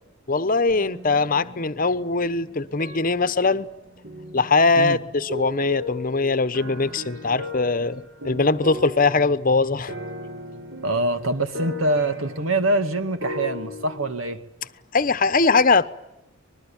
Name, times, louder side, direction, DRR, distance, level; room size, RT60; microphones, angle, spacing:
voice 1, 0.3-3.7 4.3-9.9 14.9-15.9, left 3 dB, 40° left, 1.0 m, -21 dB
Musical instrument, 0.7-8.6 8.9-9.0, right 1 dB, 40° right, 7.0 m, -53 dB
sound 1, 1.0-2.4 2.8-14.0, left 2 dB, 55° right, 3.7 m, -37 dB
voice 2, 10.8-14.4, right 2 dB, 80° right, 2.3 m, -24 dB
25.5 x 21.0 x 8.8 m
head